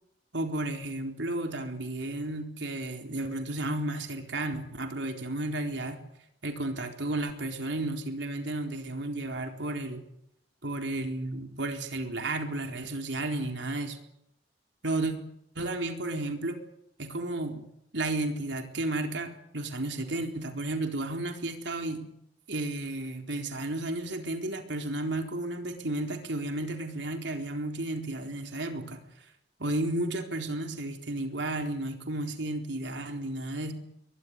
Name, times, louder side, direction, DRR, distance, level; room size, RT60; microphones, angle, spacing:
voice 1, 0.3-6.0 6.4-10.0 10.6-14.0 14.8-15.2 15.6-16.6 17.0-17.7 17.9-22.1 22.5-29.0 29.6-33.7, right 2 dB, 70° right, 4 dB, 4.0 m, -33 dB
22.5 x 20.5 x 9.7 m, 0.78 s
head